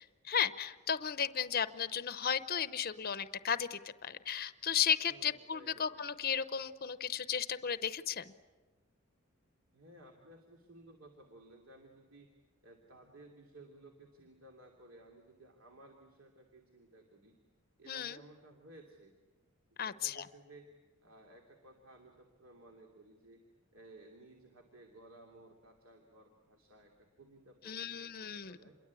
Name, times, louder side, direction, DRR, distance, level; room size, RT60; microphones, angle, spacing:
voice 1, 0.0-8.3 17.9-18.2 19.8-20.3 27.6-28.6, left 8 dB, 45° left, 13 dB, 0.8 m, -35 dB
voice 2, 5.0-6.1 9.7-12.3 12.6-17.4 17.8-19.1 19.8-20.7 21.0-23.4 23.7-28.8, right 2 dB, 65° right, 2 dB, 2.9 m, -57 dB
27.5 x 22.5 x 8.4 m, 1.3 s
head